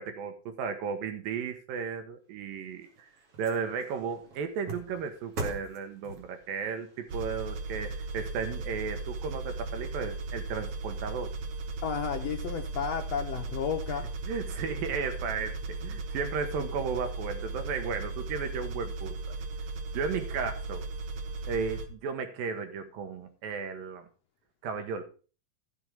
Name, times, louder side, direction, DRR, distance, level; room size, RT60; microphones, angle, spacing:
voice 1, 0.0-2.9 3.4-11.4 14.3-19.4 19.9-20.8 21.5-24.1 24.6-25.0, right 5 dB, 80° right, 8 dB, 2.9 m, -34 dB
sound 1, 2.4-8.9 9.3-9.4, right 2 dB, 45° right, 2.9 m, -44 dB
sound 2, 7.1-21.9, right 3 dB, 65° right, 1.4 m, -37 dB
voice 2, 11.8-14.1, left 7 dB, 80° left, 4 dB, 1.4 m, -32 dB
14.0 x 6.2 x 5.4 m, 0.36 s
omnidirectional pair, 4.1 m